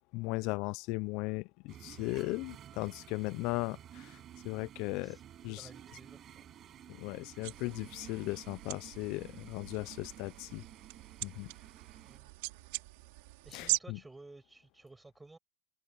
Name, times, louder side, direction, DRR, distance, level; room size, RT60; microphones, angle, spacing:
voice 1, 0.1-4.2 4.4-5.2 5.4-5.7 6.9-10.6 11.2-11.5 13.5-14.0, left 24 dB, 55° left, 0.4 m, -37 dB
sound 1, 1.7-12.2, right 11 dB, 35° right, 6.1 m, -53 dB
voice 2, 5.5-6.5 12.1-12.3 13.4-15.4, right 2 dB, 10° right, 7.0 m, -55 dB
sound 2, 7.4-13.8, right 24 dB, 65° right, 3.4 m, -41 dB
supercardioid pair, 125°, 0 cm